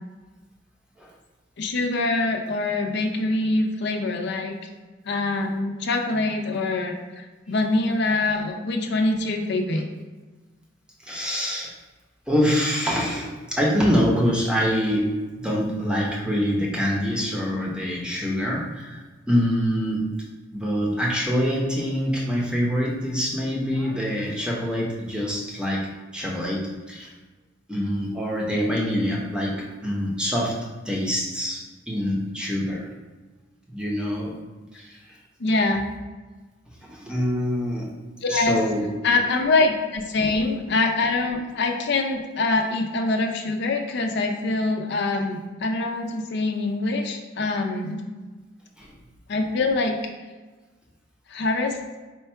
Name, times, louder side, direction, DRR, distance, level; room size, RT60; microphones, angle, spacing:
voice 1, 1.6-4.6 5.0-9.9 35.4-35.9 38.2-38.6 39.0-48.0 49.3-50.0 51.3-51.8, left 2 dB, 55° left, 3 dB, 0.5 m, -24 dB
voice 2, 11.0-11.7 12.3-19.0 19.3-20.2 20.5-27.1 27.7-30.6 30.8-32.9 33.7-34.4 34.7-35.0 36.8-37.9 38.3-39.2 40.3-40.5 48.8-48.9, equal, 5° right, -3 dB, 0.7 m, -25 dB
4.5 x 2.3 x 4.3 m, 1.3 s
head